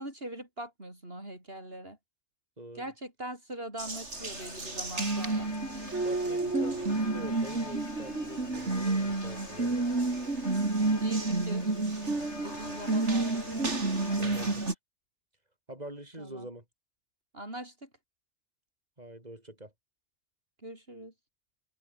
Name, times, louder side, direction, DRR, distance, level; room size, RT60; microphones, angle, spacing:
voice 1, 0.0-2.0 2.7-5.5 11.0-11.8 12.4-13.5 14.0-14.7 16.2-16.5 17.3-17.9 20.6-21.1, right 1 dB, 55° right, 7.3 m, -42 dB
voice 2, 2.6-2.9 6.0-9.9 14.2-14.7 15.7-16.6 19.0-19.7, right 1 dB, 35° right, 7.3 m, -45 dB
Water tap faucet, 3.8-14.7, right 3 dB, 85° right, 4.0 m, -30 dB
sound 1, 4.1-14.5, left 4 dB, 75° left, 2.8 m, -45 dB
omnidirectional pair, 1.2 m